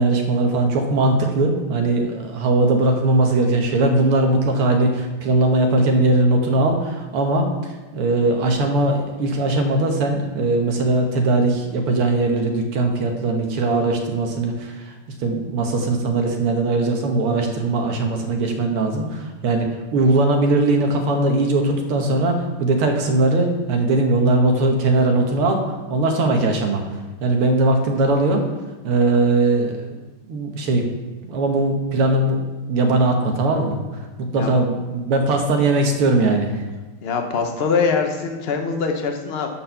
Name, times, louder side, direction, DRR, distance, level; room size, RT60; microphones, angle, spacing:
voice 1, 0.0-7.5 7.9-14.9 15.2-26.8 27.2-28.4 28.8-30.0 30.3-30.8 31.2-32.4 32.7-33.8 34.3-36.6, right 2 dB, 85° right, 3 dB, 2.1 m, -20 dB
voice 2, 37.0-39.5, left 5 dB, 65° left, 4 dB, 0.6 m, -23 dB
12.0 x 4.3 x 5.7 m, 1.2 s
omnidirectional pair, 2.4 m